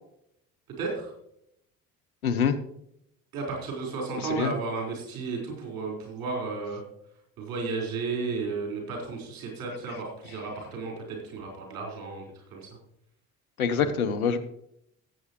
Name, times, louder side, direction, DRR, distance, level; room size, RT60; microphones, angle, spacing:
voice 1, 0.8-1.1 3.3-6.8 7.4-12.2 12.5-12.7, right 4 dB, 55° right, -1 dB, 4.4 m, -33 dB
voice 2, 2.2-2.6 4.3-4.5 13.6-14.4, left 6 dB, 80° left, 8 dB, 0.8 m, -25 dB
17.5 x 8.0 x 3.0 m, 0.75 s
figure-of-eight pair, 50°, 42 cm